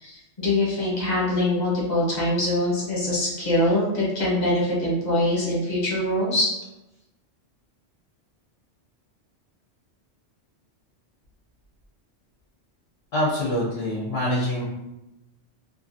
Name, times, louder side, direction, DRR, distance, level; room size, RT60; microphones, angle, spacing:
voice 1, 0.0-6.5, left 1 dB, 40° left, -5 dB, 1.0 m, -23 dB
voice 2, 13.1-14.6, left 1 dB, 70° left, -5 dB, 0.9 m, -25 dB
2.6 x 2.4 x 2.5 m, 0.92 s
omnidirectional pair, 1.2 m